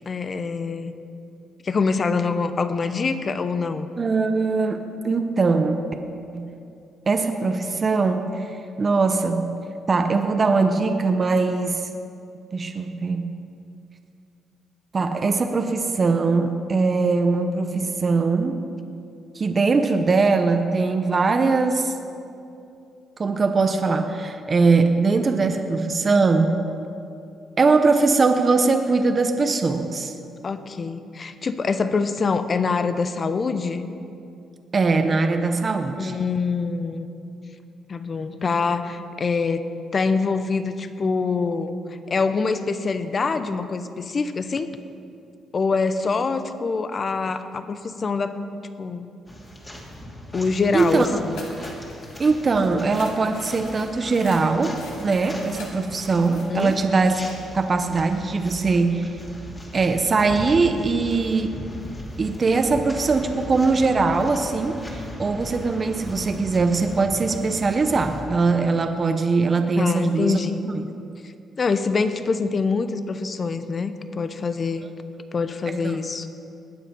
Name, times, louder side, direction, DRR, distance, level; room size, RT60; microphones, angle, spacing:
voice 1, 0.1-0.9 1.6-3.9 30.4-33.8 36.0-37.1 37.9-39.6 39.9-41.8 42.1-44.7 45.5-48.4 48.8-49.1 50.3-51.4 56.5-56.8 69.8-70.6 71.6-74.8 75.3-76.3, left 4 dB, 40° left, 10 dB, 0.8 m, -25 dB
voice 2, 4.0-5.9 6.3-6.5 7.1-9.6 9.9-11.9 12.5-13.4 14.9-18.6 19.3-21.9 23.2-26.6 27.6-30.1 34.7-36.2 50.7-51.1 52.2-57.2 57.5-59.1 59.7-61.6 62.2-70.4 70.6-70.8 75.7-76.0, right 4 dB, 35° right, 6 dB, 0.8 m, -21 dB
sound 1, 49.3-68.2, equal, 20° left, 2.7 m, -38 dB
sound 2, 51.3-52.2 52.6-56.8, left 3 dB, 85° left, 2.5 m, -42 dB
20.5 x 7.5 x 5.4 m, 2.6 s
cardioid pair, 90°, 0 cm